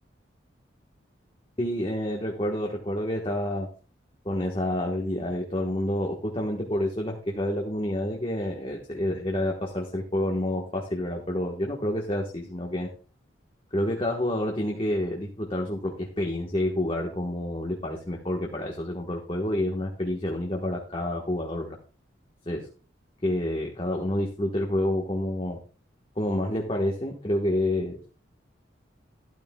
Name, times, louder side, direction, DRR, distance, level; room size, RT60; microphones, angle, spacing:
voice 1, 1.6-3.7 4.2-12.9 13.7-21.8 22.5-22.7 23.2-25.6 26.2-28.2, left 1 dB, 30° left, 0 dB, 1.2 m, -28 dB
12.5 x 12.0 x 2.3 m, 0.37 s
head